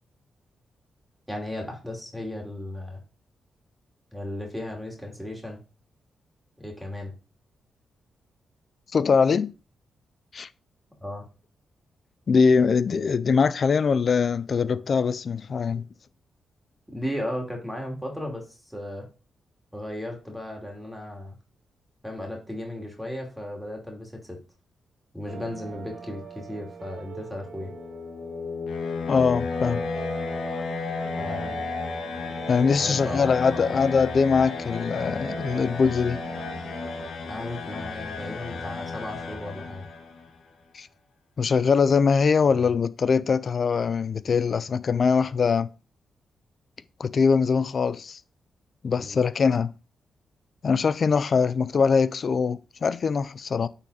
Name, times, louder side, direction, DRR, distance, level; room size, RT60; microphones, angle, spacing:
voice 1, 1.3-3.0 4.1-5.6 6.6-7.1 11.0-11.2 16.9-19.1 19.7-21.4 22.0-24.4 25.1-27.7 31.2-31.6 32.7-33.8 37.3-39.9 42.5-42.7 49.0-49.2, left 1 dB, ahead, 2.7 m, -35 dB
voice 2, 8.9-9.5 10.3-10.5 12.3-15.9 29.1-29.8 32.5-36.2 40.7-40.9 41.4-45.7 47.0-48.2 48.8-49.7 50.6-53.7, left 5 dB, 55° left, 0.5 m, -22 dB
sound 1, 25.3-37.1, right 6 dB, 90° right, 1.4 m, -42 dB
sound 2, 27.4-40.3, left 4 dB, 80° left, 1.5 m, -33 dB
8.8 x 4.1 x 4.1 m
cardioid pair, 75°, 0 cm